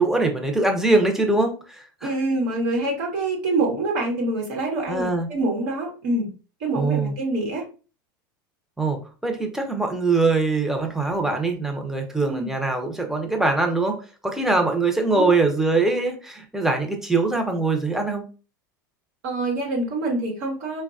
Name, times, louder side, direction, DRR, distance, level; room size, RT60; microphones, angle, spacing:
voice 1, 0.0-1.5 4.9-5.3 6.7-7.1 8.8-14.0 14.2-18.2, right 3 dB, 5° right, 3 dB, 0.7 m, -22 dB
voice 2, 2.0-6.3 6.6-7.6 12.2-12.5 15.1-15.4 19.2-20.8, right 2 dB, 60° right, -1 dB, 1.1 m, -25 dB
3.7 x 2.2 x 2.4 m, 0.35 s
hypercardioid pair, 90°, 11 cm